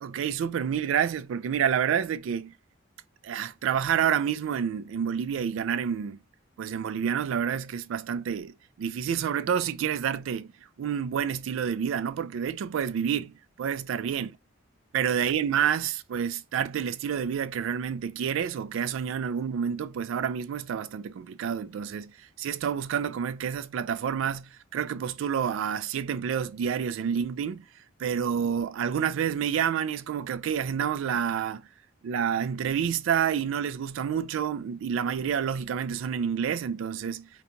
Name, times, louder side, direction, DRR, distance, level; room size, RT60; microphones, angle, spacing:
voice 1, 0.0-2.5 3.2-6.2 6.6-10.5 10.8-14.3 14.9-27.6 28.0-31.6 32.0-37.3, right 8 dB, 75° right, 0.3 m, -29 dB
2.8 x 2.3 x 2.5 m
head